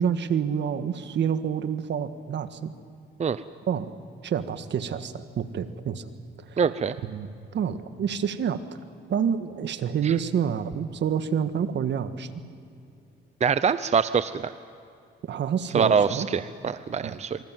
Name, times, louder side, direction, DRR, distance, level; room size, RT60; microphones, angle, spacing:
voice 1, 0.0-2.7 3.7-3.9 4.2-6.1 6.4-6.6 7.0-7.3 7.5-8.6 9.1-12.3 15.2-16.3 17.0-17.2, right 8 dB, 65° right, 10 dB, 1.7 m, -28 dB
voice 2, 6.6-7.0 10.0-10.1 13.4-14.5 15.7-17.4, right 6 dB, 35° right, 13 dB, 0.7 m, -24 dB
26.5 x 25.0 x 7.6 m, 2.5 s
cardioid pair, 90°, 20 cm